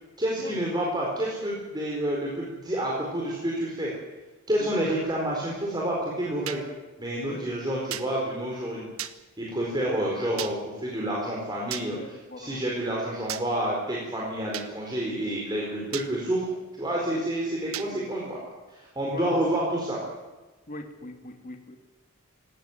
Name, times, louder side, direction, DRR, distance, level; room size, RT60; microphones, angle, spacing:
voice 1, 0.2-3.9 4.5-6.6 7.0-8.9 9.4-16.5 16.8-18.4 18.7-20.0, right 1 dB, 20° right, -3 dB, 4.4 m, -29 dB
sound 1, 6.5-6.6 7.9-8.1 9.0-9.1 10.4-10.5 11.7-11.9 13.3-13.4 14.5-14.7 15.9-16.1 17.7-17.9, right 11 dB, 80° right, 1.2 m, -34 dB
voice 2, 11.8-12.6 14.2-14.3 17.1-17.2 17.9-18.1 19.0-19.6 20.7-21.8, left 1 dB, 40° left, 5 dB, 2.3 m, -41 dB
18.5 x 17.5 x 9.2 m, 1.2 s
head